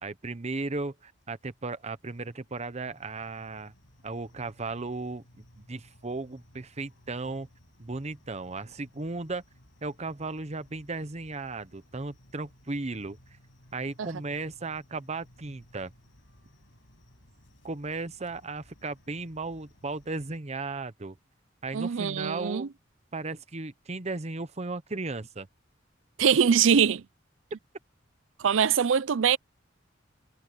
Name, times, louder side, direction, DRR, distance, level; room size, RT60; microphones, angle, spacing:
voice 1, 0.0-3.7 4.0-5.2 5.6-7.5 7.8-9.4 9.8-13.2 13.7-15.9 17.6-21.2 21.6-22.7 23.1-25.5, right 3 dB, 35° right, 0.9 m, -35 dB
sound 1, 0.9-20.4, equal, 75° left, 7.6 m, -59 dB
voice 2, 21.7-22.7 26.2-27.0 28.4-29.4, right 7 dB, 85° right, 0.5 m, -23 dB
head